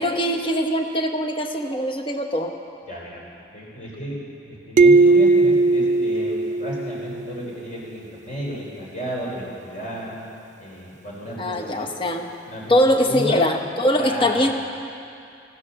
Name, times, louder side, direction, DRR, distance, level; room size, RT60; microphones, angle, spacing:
voice 1, 0.0-2.5 11.4-12.2 12.7-14.6, left 1 dB, 30° left, 3 dB, 1.1 m, -22 dB
voice 2, 2.9-3.2 3.5-4.2 4.4-10.1 10.6-11.9 12.5-12.8 13.1-13.5 13.9-14.5, equal, 45° left, -4 dB, 4.0 m, -33 dB
sound 1, 4.8-7.3, right 3 dB, 40° right, 0.4 m, -17 dB
15.5 x 12.5 x 7.0 m, 2.5 s
head